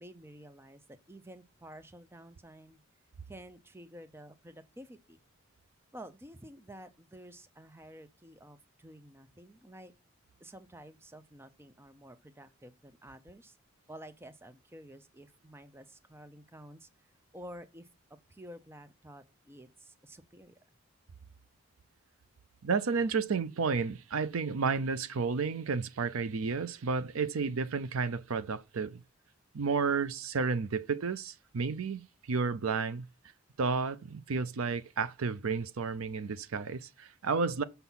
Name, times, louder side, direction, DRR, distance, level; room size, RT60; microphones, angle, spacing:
voice 1, 0.0-2.8 3.3-5.2 5.9-9.9 10.4-13.6 13.9-17.1 17.3-17.9 18.3-20.6, equal, 10° right, 0.5 m, -51 dB
voice 2, 22.6-29.0 29.5-33.1 33.6-37.6, right 5 dB, 90° right, 0.5 m, -32 dB
6.9 x 6.0 x 5.6 m
head